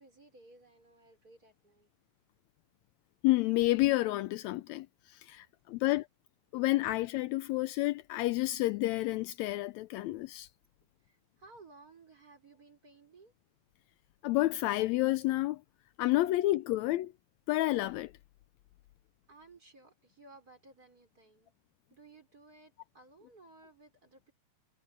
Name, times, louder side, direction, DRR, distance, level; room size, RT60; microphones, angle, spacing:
voice 1, 0.0-1.9 5.7-5.8 11.0-13.3 19.3-21.5 21.9-24.3, right 3 dB, 25° right, 5.3 m, -58 dB
voice 2, 3.2-6.1 6.5-10.5 14.2-15.6 16.0-17.1 17.5-18.1, left 18 dB, 85° left, 1.6 m, -30 dB
omnidirectional pair, 3.7 m